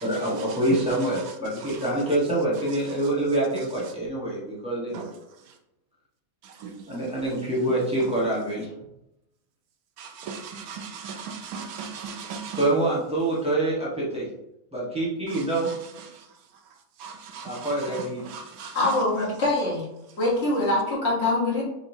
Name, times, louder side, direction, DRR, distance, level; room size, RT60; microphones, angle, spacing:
voice 1, 0.0-5.0 6.9-8.7 12.5-14.3 14.7-15.7 17.4-18.2, right 1 dB, 5° right, 1.2 m, -26 dB
voice 2, 10.3-12.6 17.0-17.4 18.6-18.7, right 6 dB, 80° right, 1.1 m, -36 dB
voice 3, 18.7-19.8 20.2-21.6, left 2 dB, 50° left, 1.6 m, -24 dB
4.0 x 3.7 x 2.7 m
omnidirectional pair, 1.5 m